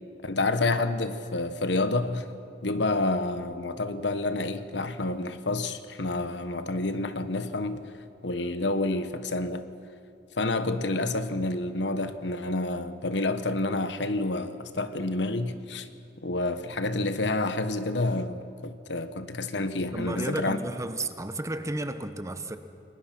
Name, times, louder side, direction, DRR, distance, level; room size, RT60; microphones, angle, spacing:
voice 1, 0.2-2.3 2.6-7.9 8.2-9.6 10.4-15.9 16.2-20.6, left 2 dB, 80° left, 1.3 m, -29 dB
voice 2, 19.9-22.6, right 1 dB, 15° right, 1.0 m, -32 dB
29.5 x 19.5 x 6.1 m
head